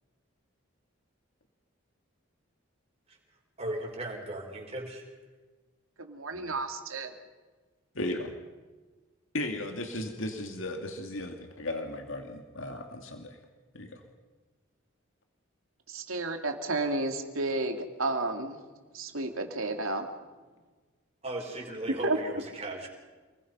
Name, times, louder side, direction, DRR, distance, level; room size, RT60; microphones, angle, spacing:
voice 1, 3.6-5.1 21.2-22.9, right 1 dB, 30° right, 0 dB, 5.0 m, -36 dB
voice 2, 6.0-7.1 15.9-18.6 18.9-20.1 22.0-22.2, right 2 dB, 80° right, 4 dB, 2.6 m, -31 dB
voice 3, 7.9-8.3 9.3-13.4 13.7-14.0, left 1 dB, 70° left, 4 dB, 2.2 m, -36 dB
29.0 x 20.5 x 5.6 m, 1.3 s
head